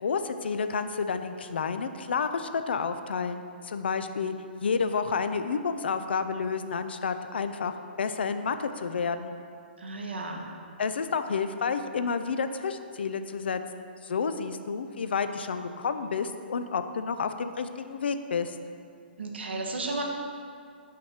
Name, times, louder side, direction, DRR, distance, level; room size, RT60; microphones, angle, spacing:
voice 1, 0.0-4.3 4.6-7.7 8.0-9.3 10.8-13.6 14.0-18.6, left 5 dB, 70° left, 9 dB, 0.4 m, -30 dB
voice 2, 9.8-10.5 19.2-20.0, right 2 dB, 75° right, 1 dB, 0.8 m, -33 dB
5.7 x 3.2 x 5.6 m, 2.3 s
hypercardioid pair, 125°, 6 cm